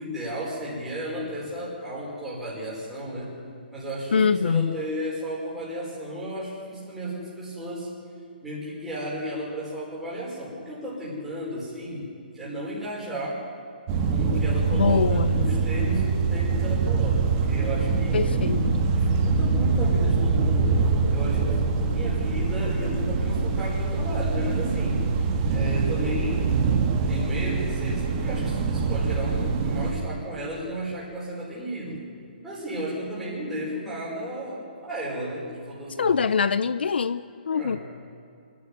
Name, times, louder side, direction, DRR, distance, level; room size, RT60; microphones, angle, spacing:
voice 1, 0.0-3.3 3.7-7.9 8.4-12.1 12.3-13.4 14.1-18.2 18.9-25.0 25.5-26.5 27.0-32.0 32.4-36.3 37.5-37.8, right 1 dB, 5° right, -9 dB, 5.3 m, -33 dB
voice 2, 4.1-4.8 14.7-15.5 18.1-18.8 36.0-37.8, left 6 dB, 85° left, 15 dB, 0.6 m, -24 dB
sound 1, 13.9-29.9, right 4 dB, 25° right, 1.6 m, -24 dB
26.5 x 10.5 x 9.4 m, 2.5 s
hypercardioid pair, 170°, 5 cm